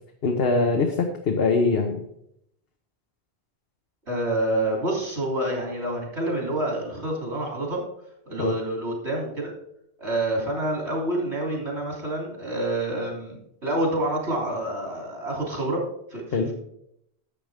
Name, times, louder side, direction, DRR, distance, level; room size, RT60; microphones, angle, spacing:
voice 1, 0.2-2.0 8.4-8.5 16.3-16.5, left 4 dB, 65° left, 3 dB, 1.2 m, -22 dB
voice 2, 4.1-7.8 8.3-9.5 10.0-15.8 16.1-16.5, right 1 dB, 80° right, -1 dB, 3.6 m, -27 dB
11.5 x 7.6 x 3.6 m, 0.75 s
omnidirectional pair, 1.1 m